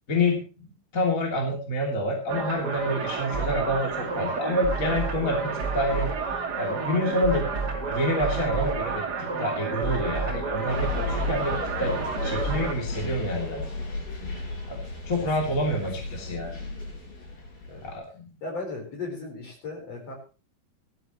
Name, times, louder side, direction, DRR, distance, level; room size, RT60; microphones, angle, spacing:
voice 1, 0.1-0.4 0.9-6.1 6.6-7.5 7.9-9.0 9.4-11.9 12.2-13.6 14.7-14.8 15.0-16.5 17.8-18.3, left 1 dB, 25° left, -1 dB, 2.9 m, -27 dB
sound 1, 2.3-12.7, right 4 dB, 55° right, 1.1 m, -30 dB
sound 2, 10.7-18.0, left 3 dB, 65° left, 9.7 m, -34 dB
voice 2, 15.2-15.5 17.7-17.9 18.4-20.2, left 3 dB, 40° left, 1 dB, 5.3 m, -36 dB
19.0 x 13.5 x 3.1 m, 0.34 s
omnidirectional pair, 4.4 m